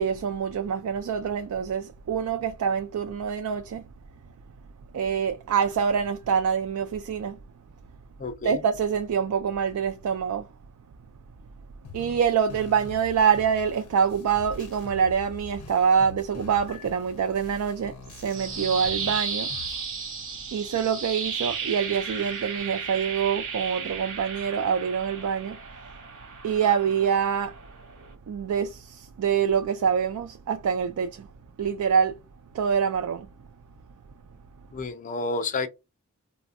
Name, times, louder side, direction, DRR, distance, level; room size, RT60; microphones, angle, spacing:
voice 1, 0.0-3.9 4.9-7.4 8.4-10.5 11.9-19.6 20.5-25.6 26.4-27.6 28.3-31.3 31.6-32.2 32.5-33.3, right 7 dB, 75° right, 0.3 m, -25 dB
voice 2, 8.2-8.6 34.7-35.7, left 3 dB, 35° left, 0.4 m, -30 dB
sound 1, 11.8-19.8, left 4 dB, 90° left, 0.5 m, -44 dB
sound 2, 18.1-28.1, right 5 dB, 60° right, 0.9 m, -34 dB
3.4 x 2.1 x 2.4 m
head